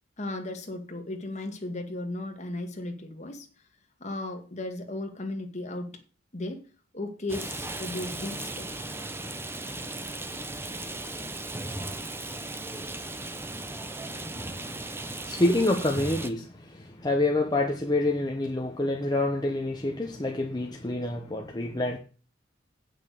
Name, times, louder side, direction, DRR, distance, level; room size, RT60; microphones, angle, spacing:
voice 1, 0.2-3.5 4.0-6.0 6.3-6.6 6.9-8.9, left 2 dB, 35° left, 2.0 m, -35 dB
Rain, 7.3-16.3, right 2 dB, 10° right, 0.9 m, -36 dB
voice 2, 15.2-22.0, left 2 dB, 20° left, 1.0 m, -27 dB
9.0 x 6.3 x 6.6 m
head